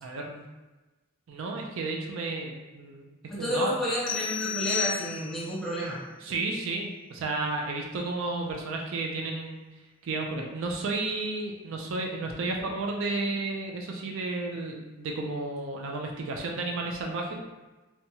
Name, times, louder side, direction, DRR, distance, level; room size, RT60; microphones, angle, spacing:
voice 1, 0.0-0.4 1.3-3.1 3.4-3.7 6.2-9.6 10.0-17.4, right 3 dB, 65° right, 1 dB, 0.3 m, -32 dB
voice 2, 3.3-6.0, equal, ahead, -8 dB, 0.8 m, -30 dB
sound 1, 4.1-5.6, left 7 dB, 60° left, 0.5 m, -32 dB
2.9 x 2.2 x 2.7 m, 1.2 s
head